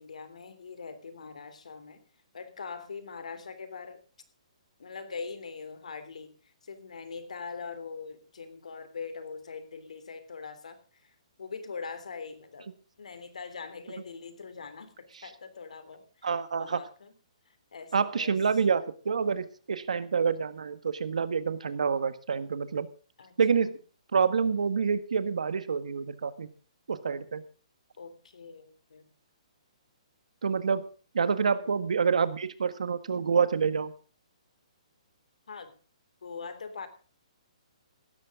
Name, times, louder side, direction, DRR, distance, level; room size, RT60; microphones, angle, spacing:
voice 1, 0.0-2.0 2.3-4.0 4.8-12.7 13.0-17.1 17.5-18.6 23.2-23.8 28.0-29.1 31.5-32.2 35.5-35.7 36.2-36.9, left 5 dB, 85° left, 11 dB, 3.3 m, -43 dB
voice 2, 16.2-16.8 17.9-22.9 23.4-23.8 24.1-26.5 26.9-27.4 30.4-30.8 31.1-33.9, right 6 dB, 85° right, 12 dB, 1.7 m, -27 dB
17.0 x 13.5 x 3.8 m, 0.38 s
hypercardioid pair, 175°, 4 cm